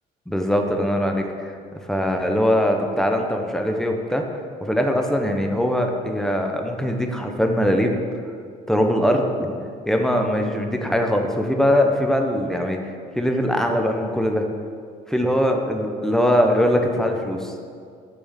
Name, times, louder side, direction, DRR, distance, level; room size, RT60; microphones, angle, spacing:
voice 1, 0.3-1.5 1.9-4.2 4.6-8.0 8.7-9.5 9.9-12.8 13.2-14.5 15.1-17.5, equal, 5° left, 3 dB, 1.0 m, -21 dB
6.9 x 6.2 x 7.2 m, 2.2 s
cardioid pair, 110°, 17 cm